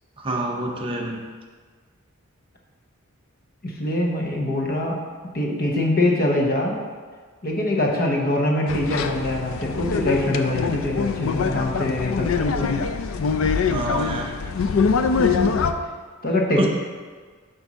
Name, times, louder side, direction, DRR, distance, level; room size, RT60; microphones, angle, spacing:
voice 1, 0.2-1.2 13.7-14.4 16.6-16.7, right 1 dB, 25° right, 1 dB, 0.6 m, -26 dB
voice 2, 3.6-5.0 5.3-6.8 7.4-12.9 16.2-16.7, left 1 dB, 45° left, -1 dB, 0.9 m, -23 dB
sound 1, 8.7-15.7, left 5 dB, 70° left, 0.4 m, -24 dB
8.0 x 2.7 x 6.0 m, 1.5 s
head